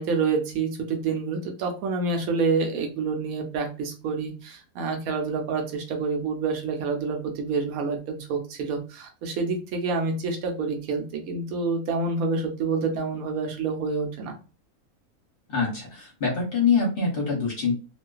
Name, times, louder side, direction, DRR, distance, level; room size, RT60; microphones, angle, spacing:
voice 1, 0.0-14.3, right 4 dB, 75° right, 4 dB, 1.0 m, -28 dB
voice 2, 15.5-17.7, left 5 dB, 50° left, -2 dB, 0.8 m, -24 dB
2.4 x 2.3 x 2.2 m, 0.34 s
omnidirectional pair, 1.5 m